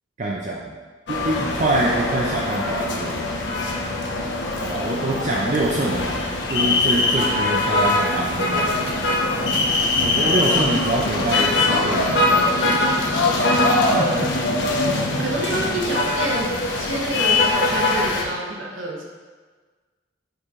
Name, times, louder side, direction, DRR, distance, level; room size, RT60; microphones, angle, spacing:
voice 1, 0.2-0.7 1.1-3.2 4.6-9.0 10.0-13.5 13.9-14.3 15.8-16.0, right 1 dB, 40° right, -3 dB, 0.5 m, -25 dB
sound 1, 1.1-18.2, left 2 dB, 65° left, 0.9 m, -22 dB
voice 2, 15.2-16.5 16.8-19.1, right 2 dB, 85° right, -1 dB, 1.0 m, -27 dB
6.4 x 4.9 x 3.7 m, 1.4 s
head